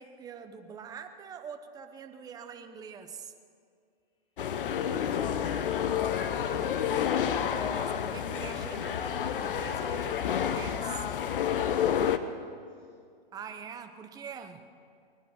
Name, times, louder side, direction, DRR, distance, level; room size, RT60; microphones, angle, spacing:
voice 1, 0.0-3.3 7.3-11.1 13.3-14.6, right 7 dB, 10° right, 7 dB, 0.8 m, -44 dB
sound 1, 4.4-12.2, left 8 dB, 60° left, 1.0 m, -29 dB
voice 2, 11.8-12.9, equal, 15° left, -5 dB, 4.0 m, -52 dB
22.0 x 10.0 x 6.3 m, 2.3 s
hypercardioid pair, 135°, 30 cm